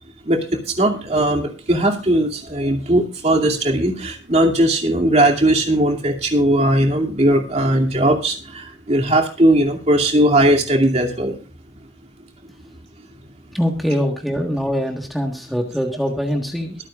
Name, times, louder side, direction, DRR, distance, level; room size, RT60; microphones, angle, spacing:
voice 1, 0.2-11.4, right 1 dB, 35° right, 1 dB, 2.6 m, -18 dB
voice 2, 13.5-16.8, equal, ahead, 2 dB, 1.4 m, -23 dB
23.0 x 8.9 x 2.4 m, 0.36 s
head